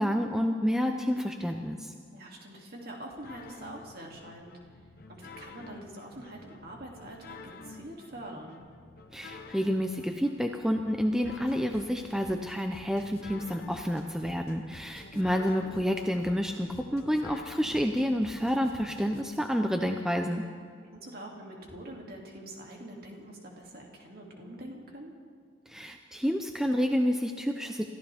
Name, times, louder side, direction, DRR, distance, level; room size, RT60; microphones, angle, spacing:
voice 1, 0.0-1.9 9.1-20.4 25.7-27.9, equal, 5° right, 4 dB, 0.5 m, -29 dB
voice 2, 2.1-4.6 5.1-8.6 15.1-15.6 20.9-25.1, right 1 dB, 50° right, -1 dB, 2.5 m, -45 dB
sound 1, 3.2-19.2, left 3 dB, 45° left, 0.9 m, -49 dB
28.5 x 14.5 x 3.5 m, 2.1 s
head